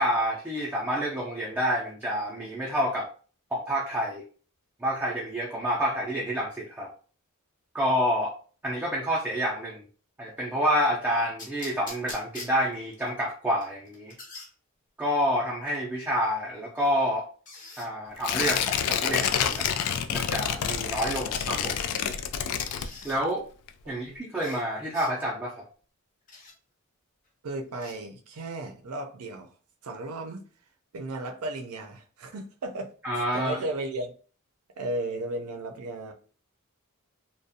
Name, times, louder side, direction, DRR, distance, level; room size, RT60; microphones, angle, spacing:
voice 1, 0.0-3.1 3.5-4.2 4.8-6.9 7.7-8.3 8.6-9.8 10.2-14.1 15.0-17.3 17.8-19.7 20.1-21.8 23.0-23.4 23.9-25.6 33.0-33.6, equal, 10° right, 0.4 m, -28 dB
sound 1, 11.4-13.1 13.6-14.5 16.0-16.1 17.4-17.9 19.1-19.7 21.0-21.5 22.5-23.2 24.4-24.6 24.9-25.1 26.3-26.5 27.7-27.9, left 3 dB, 35° left, 0.6 m, -44 dB
Tearing, 18.2-23.3 23.7-23.8, left 8 dB, 90° left, 0.3 m, -28 dB
voice 2, 27.4-29.5 29.8-30.5 30.9-32.9 33.3-34.1 34.8-36.1, right 2 dB, 85° right, 0.5 m, -34 dB
2.4 x 2.1 x 2.6 m
head